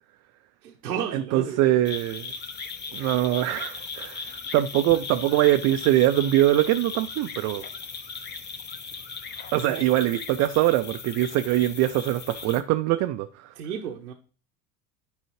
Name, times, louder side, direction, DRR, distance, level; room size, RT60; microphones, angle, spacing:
voice 1, 0.6-1.8 9.7-9.8 13.6-14.1, right 8 dB, 85° right, 0.8 m, -33 dB
voice 2, 1.1-2.3 2.9-7.6 9.5-13.5, right 15 dB, 35° right, 0.4 m, -23 dB
sound 1, 1.8-12.6, left 5 dB, 20° left, 0.7 m, -37 dB
10.0 x 4.7 x 3.1 m
hypercardioid pair, 80°, 48 cm